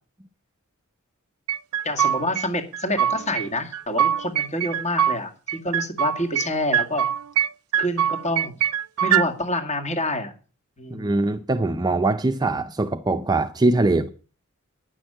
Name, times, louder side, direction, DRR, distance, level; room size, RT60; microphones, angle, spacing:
sound 1, 1.5-2.5 2.7-3.5 3.7-5.2 5.5-6.5 6.7-7.5 7.7-9.3, right 9 dB, 85° right, 0.5 m, -23 dB
voice 1, 1.8-7.1 7.8-8.6 9.0-10.3 10.8-11.1, left 1 dB, 30° left, 2.0 m, -27 dB
voice 2, 10.9-14.1, right 2 dB, 20° right, 0.5 m, -22 dB
10.0 x 6.2 x 8.8 m
head